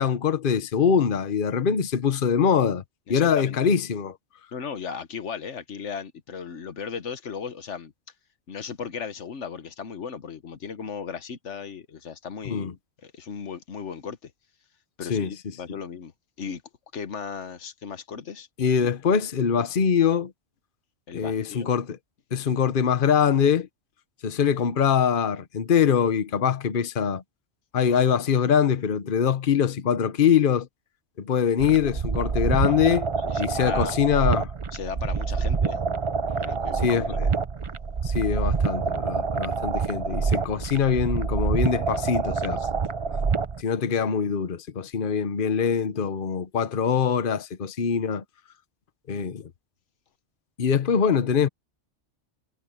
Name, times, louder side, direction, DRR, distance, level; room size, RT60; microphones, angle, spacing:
voice 1, 0.0-2.8 3.1-4.1 12.4-12.7 15.1-15.3 18.6-20.3 21.1-22.0 22.3-23.7 24.2-27.2 27.7-30.7 31.2-33.1 33.4-34.5 36.8-37.3 38.0-42.7 43.6-48.2 49.1-49.4 50.6-51.5, left 7 dB, 50° left, 1.1 m, -23 dB
voice 2, 3.1-3.7 4.5-7.9 8.5-12.7 13.0-14.3 15.0-16.1 16.4-16.6 16.9-18.5 21.1-21.7 32.4-32.8 33.2-34.0 34.7-35.8 36.4-37.4 49.1-49.5, left 6 dB, 85° left, 1.4 m, -36 dB
sound 1, 31.6-43.6, right 5 dB, 35° right, 0.6 m, -27 dB
omnidirectional pair, 1.2 m